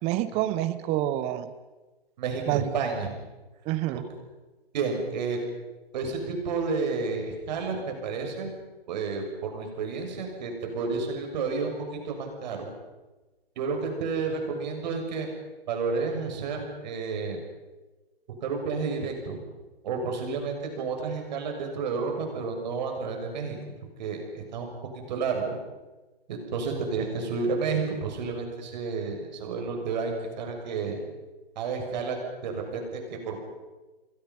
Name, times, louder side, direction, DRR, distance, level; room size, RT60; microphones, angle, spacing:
voice 1, 0.0-1.5 2.5-2.6 3.6-4.0, right 14 dB, 20° right, 14 dB, 1.1 m, -27 dB
voice 2, 2.2-3.1 3.9-4.0 4.7-5.4 5.9-8.5 8.9-12.7 13.5-15.3 15.7-17.4 18.4-19.4 19.8-23.6 24.0-24.7 24.9-25.6 26.3-31.0 31.5-32.2 32.4-33.4, right 4 dB, 45° right, 3 dB, 6.7 m, -31 dB
29.5 x 22.5 x 5.5 m, 1.2 s
hypercardioid pair, 140°, 30 cm